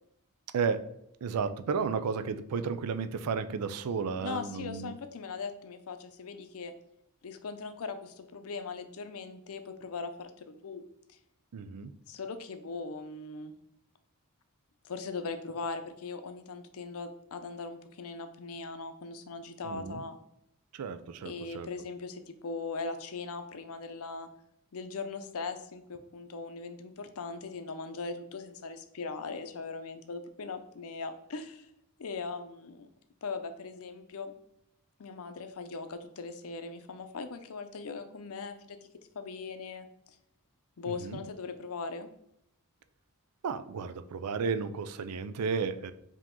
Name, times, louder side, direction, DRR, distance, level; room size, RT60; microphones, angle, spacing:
voice 1, 0.5-0.8 1.2-4.9 11.5-11.9 19.6-20.0 20.7-21.7 40.9-41.3 43.4-45.9, right 5 dB, 85° right, 11 dB, 0.4 m, -33 dB
voice 2, 4.2-6.7 7.2-10.8 11.1-11.2 12.1-13.5 14.8-20.2 21.2-24.3 24.7-31.7 32.0-32.9 33.2-34.3 35.0-38.8 39.1-39.9 40.8-42.1, left 4 dB, 70° left, 9 dB, 0.5 m, -40 dB
4.8 x 2.9 x 3.7 m, 0.76 s
head